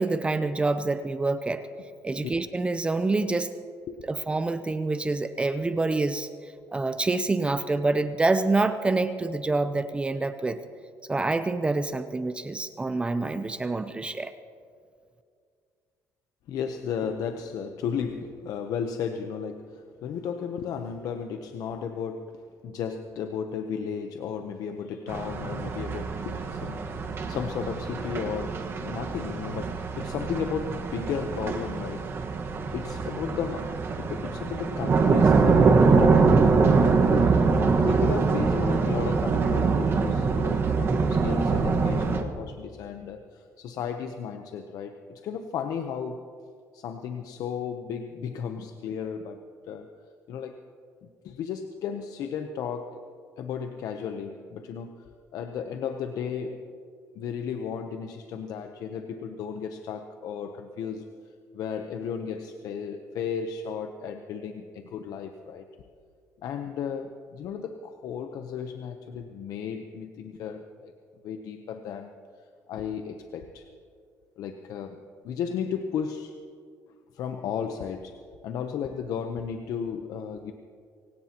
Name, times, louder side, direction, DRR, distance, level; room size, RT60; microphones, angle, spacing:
voice 1, 0.0-1.6 2.0-3.5 4.1-6.3 6.7-10.6 11.1-14.3, right 3 dB, 15° right, 11 dB, 0.6 m, -26 dB
voice 2, 16.5-26.9 27.3-32.1 32.7-36.4 37.1-37.4 37.8-46.3 46.7-49.9 50.3-50.6 51.0-53.0 53.4-55.0 55.3-56.8 57.1-61.1 61.5-65.6 66.4-70.9 71.2-72.2 72.7-73.7 74.4-75.0 75.2-76.3 77.1-78.2 78.4-80.5, left 7 dB, 65° left, 7 dB, 0.8 m, -34 dB
sound 1, 25.1-42.2, right 4 dB, 40° right, 1.4 m, -24 dB
23.5 x 17.0 x 2.9 m, 2.2 s
cardioid pair, 110°, 7 cm